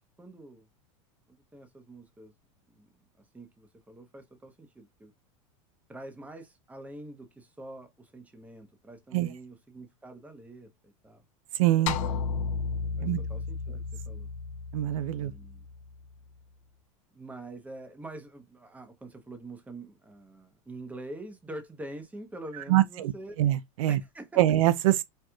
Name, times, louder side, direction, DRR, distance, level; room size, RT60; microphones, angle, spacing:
voice 1, 0.2-0.7 1.3-2.3 2.7-2.9 3.3-5.1 5.9-11.2 11.8-12.2 13.0-14.3 15.1-15.6 17.1-23.3 23.9-24.4, right 1 dB, 10° right, 0.9 m, -45 dB
voice 2, 11.6-12.0 13.0-13.2 14.7-15.3 22.7-23.1 23.4-24.0 24.4-25.0, right 14 dB, 75° right, 0.5 m, -24 dB
sound 1, 11.9-16.3, left 5 dB, 65° left, 0.6 m, -34 dB
4.5 x 2.3 x 2.4 m
hypercardioid pair, 105°, 17 cm